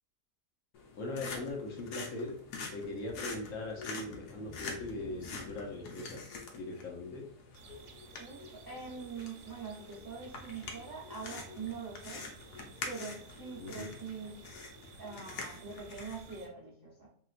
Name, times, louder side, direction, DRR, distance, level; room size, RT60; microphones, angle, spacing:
sound 1, 0.7-16.3, left 4 dB, 85° left, 1.2 m, -46 dB
voice 1, 1.0-2.3 2.7-6.2 6.5-7.3 13.6-13.9, left 2 dB, 65° left, 1 dB, 1.0 m, -40 dB
sound 2, 7.5-16.5, right 5 dB, 70° right, 1.0 m, -55 dB
voice 2, 8.2-12.3 12.8-14.3 15.0-17.1, right 5 dB, 35° right, -5 dB, 0.3 m, -44 dB
3.2 x 2.9 x 2.4 m, 0.64 s
omnidirectional pair, 1.7 m